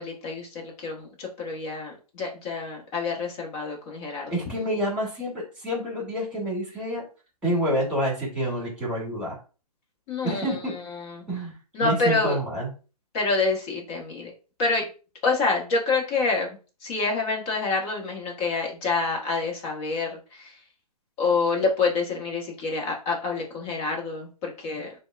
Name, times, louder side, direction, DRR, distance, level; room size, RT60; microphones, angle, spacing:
voice 1, 0.0-4.3 10.1-11.2 11.7-12.4 13.1-14.3 14.6-14.9 15.2-16.5 16.8-20.5 21.2-24.9, left 3 dB, 25° left, -1 dB, 1.1 m, -27 dB
voice 2, 4.3-7.0 7.4-9.4 10.2-10.7 11.3-11.5 11.8-12.7, equal, 5° right, -4 dB, 2.2 m, -28 dB
6.8 x 2.3 x 2.4 m, 0.34 s
hypercardioid pair, 150°, 20 cm